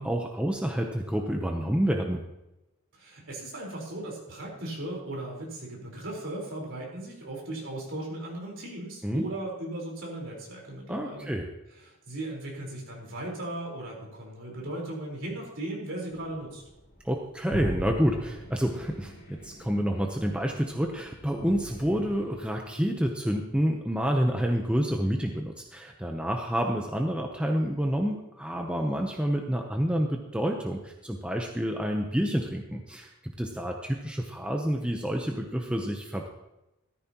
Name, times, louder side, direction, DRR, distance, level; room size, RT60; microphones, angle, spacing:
voice 1, 0.0-2.3 9.0-9.2 10.9-11.5 17.0-33.1 33.4-36.3, equal, 5° right, 2 dB, 0.8 m, -28 dB
voice 2, 2.9-11.3 11.8-16.6, right 1 dB, 55° right, -2 dB, 4.4 m, -37 dB
sound 1, 16.1-22.4, right 1 dB, 45° left, 3.9 m, -41 dB
14.0 x 14.0 x 3.0 m, 0.93 s
head